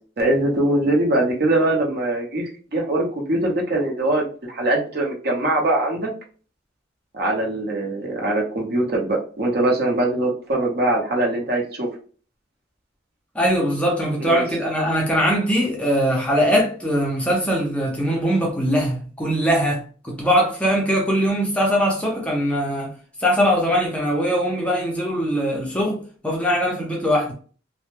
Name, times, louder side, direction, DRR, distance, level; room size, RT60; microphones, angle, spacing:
voice 1, 0.2-6.1 7.1-11.9 14.2-14.4, right 1 dB, 55° right, 0.7 m, -22 dB
voice 2, 13.3-22.9 23.2-27.3, equal, 5° left, 0.4 m, -21 dB
2.1 x 2.1 x 3.0 m
head